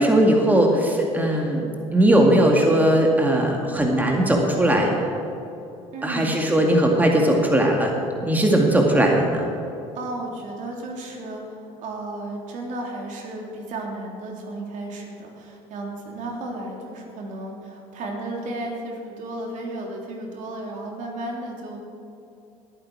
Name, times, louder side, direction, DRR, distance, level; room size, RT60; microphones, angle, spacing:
voice 1, 0.0-4.9 6.0-7.9 8.2-9.4, right 1 dB, 10° right, 1 dB, 2.1 m, -19 dB
voice 2, 5.9-6.3 9.9-21.8, right 2 dB, 60° right, 0 dB, 3.2 m, -33 dB
19.5 x 9.1 x 4.8 m, 2.8 s
supercardioid pair, 75°, 14 cm